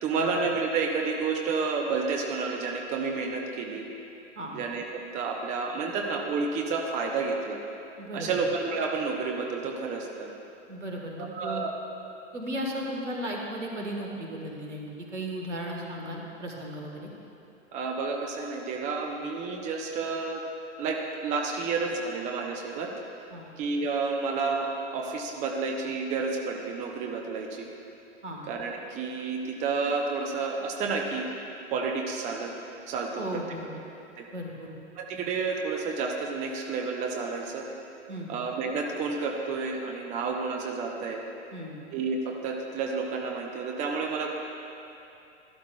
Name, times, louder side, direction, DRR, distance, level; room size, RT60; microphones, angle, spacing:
voice 1, 0.0-3.9 4.5-7.6 8.1-10.3 11.2-11.7 17.7-20.4 20.8-22.9 23.6-27.7 28.5-31.3 31.7-32.5 32.9-33.4 34.2-34.3 35.0-37.7 38.3-41.2 41.9-44.3, right 4 dB, 20° right, 2 dB, 0.6 m, -30 dB
voice 2, 8.0-8.3 10.7-11.6 12.3-17.1 23.3-23.5 28.2-28.4 33.2-33.7 34.3-34.7 38.1-38.3 41.5-41.7, right 1 dB, 75° right, 0 dB, 1.6 m, -35 dB
12.5 x 12.5 x 2.3 m, 2.8 s
figure-of-eight pair, 100°, 36 cm